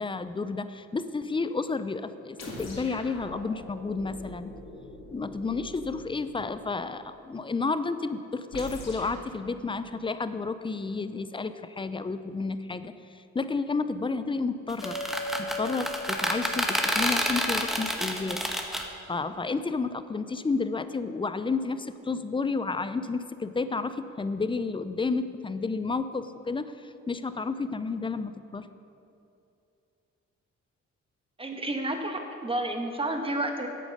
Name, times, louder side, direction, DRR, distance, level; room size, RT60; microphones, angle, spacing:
voice 1, 0.0-4.5 5.1-15.0 15.4-18.4 19.1-28.7, left 4 dB, 15° left, 12 dB, 0.5 m, -31 dB
sound 1, 2.4-6.7 8.5-9.2, left 1 dB, 60° left, 2.4 m, -43 dB
sound 2, 14.7-18.8, equal, ahead, 1.1 m, -28 dB
sound 3, 14.8-19.5, left 1 dB, 85° left, 1.8 m, -40 dB
voice 2, 31.4-33.7, right 1 dB, 20° right, 4 dB, 1.3 m, -30 dB
9.0 x 8.5 x 6.5 m, 2.7 s
cardioid pair, 90°, 30 cm